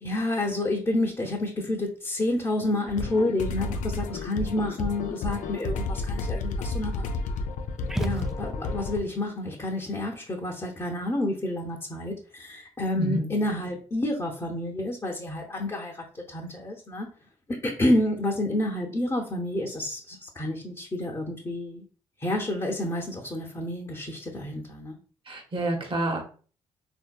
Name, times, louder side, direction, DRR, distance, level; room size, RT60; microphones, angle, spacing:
voice 1, 0.0-7.1 7.9-17.1 17.5-21.8 22.2-25.0, left 1 dB, 25° left, -2 dB, 0.8 m, -29 dB
sound 1, 2.9-9.0, left 3 dB, 65° left, 0.4 m, -31 dB
sound 2, 7.9-8.9, right 1 dB, 5° right, 0.3 m, -31 dB
voice 2, 13.0-13.3 25.3-26.2, right 1 dB, 40° right, 2 dB, 1.0 m, -28 dB
3.6 x 2.7 x 2.3 m, 0.39 s
hypercardioid pair, 45°, 14 cm